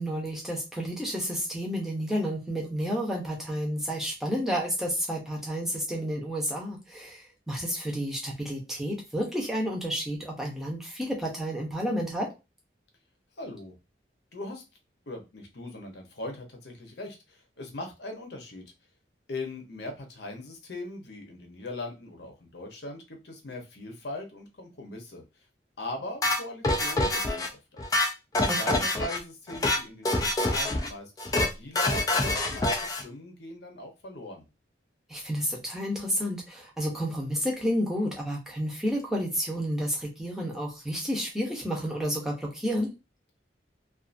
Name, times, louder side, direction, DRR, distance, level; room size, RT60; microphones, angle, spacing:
voice 1, 0.0-12.3 28.5-28.8 35.1-42.9, equal, ahead, -2 dB, 0.7 m, -31 dB
voice 2, 13.4-13.8 14.3-14.6 15.1-18.6 19.3-25.4 25.8-27.9 28.4-34.5, left 1 dB, 70° left, 3 dB, 0.8 m, -40 dB
sound 1, 26.2-27.5 27.8-29.2 29.5-29.8 30.1-30.9 31.2-31.5 31.8-33.0, left 2 dB, 20° left, 0.4 m, -26 dB
2.6 x 2.5 x 2.5 m, 0.27 s
head